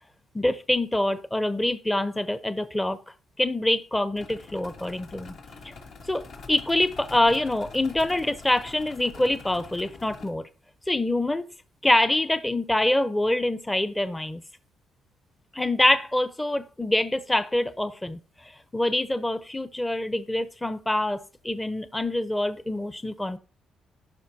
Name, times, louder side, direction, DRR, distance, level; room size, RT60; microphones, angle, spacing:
voice 1, 0.3-3.0 3.4-5.3 5.6-5.7 6.1-10.4 10.9-11.5 11.8-14.4 15.5-23.4, left 1 dB, 10° left, 0.7 m, -25 dB
sound 1, 4.2-10.3, left 4 dB, 70° left, 1.7 m, -45 dB
15.0 x 5.6 x 2.7 m
cardioid pair, 90°, 0 cm